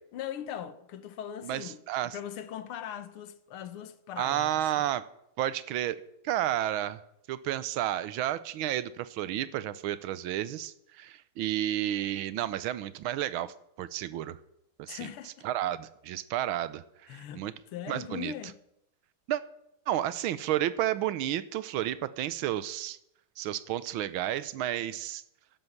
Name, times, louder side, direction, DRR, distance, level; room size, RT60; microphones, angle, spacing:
voice 1, 0.1-4.5 14.9-15.5 17.1-17.4 17.7-18.5, left 10 dB, 90° left, 1.9 m, -40 dB
voice 2, 1.4-2.1 4.2-5.1 5.4-7.0 7.3-14.4 14.8-15.1 15.4-16.8 17.1-17.5 17.9-18.3 19.3-19.4 19.9-23.0 23.4-25.2, right 12 dB, 75° right, 1.5 m, -31 dB
11.5 x 11.0 x 7.2 m
omnidirectional pair, 2.3 m